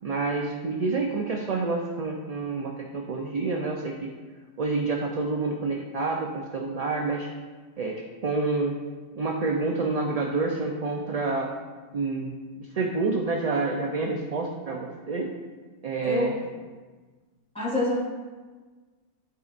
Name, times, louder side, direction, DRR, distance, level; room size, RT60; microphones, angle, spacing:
voice 1, 0.0-4.1 4.6-7.3 7.8-7.9 8.2-8.7 9.1-11.5 11.9-15.3 15.8-16.3, right 3 dB, 45° right, 0 dB, 0.5 m, -28 dB
voice 2, 17.5-18.0, left 1 dB, 5° left, -7 dB, 2.0 m, -27 dB
12.0 x 4.0 x 2.5 m, 1.4 s
omnidirectional pair, 1.2 m